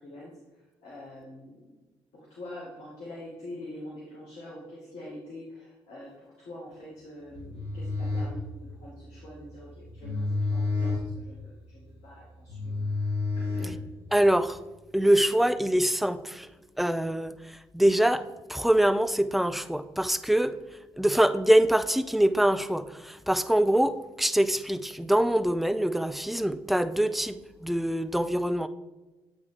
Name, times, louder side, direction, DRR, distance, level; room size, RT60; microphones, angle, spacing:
voice 1, 0.0-1.6 2.1-13.8, left 1 dB, 55° left, 1.6 m, -45 dB
sound 1, 7.3-14.2, left 3 dB, 85° left, 1.8 m, -31 dB
voice 2, 14.1-14.6 14.9-16.5 16.8-17.3 17.7-20.6 21.0-28.7, right 1 dB, ahead, 0.3 m, -24 dB
7.9 x 4.1 x 3.5 m
figure-of-eight pair, 45°, 13 cm